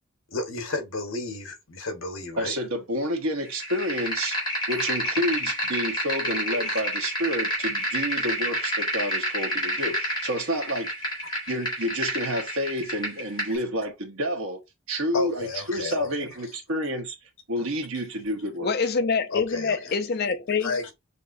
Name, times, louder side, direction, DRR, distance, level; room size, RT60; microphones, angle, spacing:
voice 1, 0.3-2.5 4.7-4.9 6.6-6.8 15.1-16.3 17.9-18.0 19.3-19.9 20.5-20.9, left 3 dB, 70° left, 1.2 m, -32 dB
voice 2, 2.4-4.4 4.7-10.9 11.5-14.6 14.9-17.1 17.5-18.7, equal, 75° right, 1.2 m, -29 dB
sound 1, 3.5-13.5, equal, 20° left, 1.6 m, -29 dB
voice 3, 6.2-6.7 18.6-20.8, left 5 dB, 45° left, 0.5 m, -26 dB
6.5 x 2.7 x 2.6 m
head